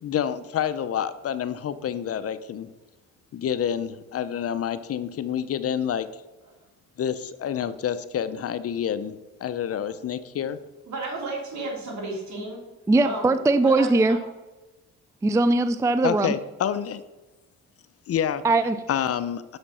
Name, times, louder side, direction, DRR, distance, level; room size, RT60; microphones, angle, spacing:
voice 1, 0.0-2.7 3.3-6.1 7.0-10.6 16.0-17.0 18.1-18.4 18.9-19.6, left 9 dB, 50° left, 13 dB, 0.6 m, -28 dB
voice 2, 10.8-12.6 13.0-13.3 13.6-14.2, right 2 dB, 70° right, -1 dB, 3.0 m, -33 dB
voice 3, 12.9-14.2 15.2-16.3 18.4-18.8, right 2 dB, 10° right, 12 dB, 0.3 m, -20 dB
7.1 x 5.1 x 5.6 m, 1.1 s
cardioid pair, 90°, 30 cm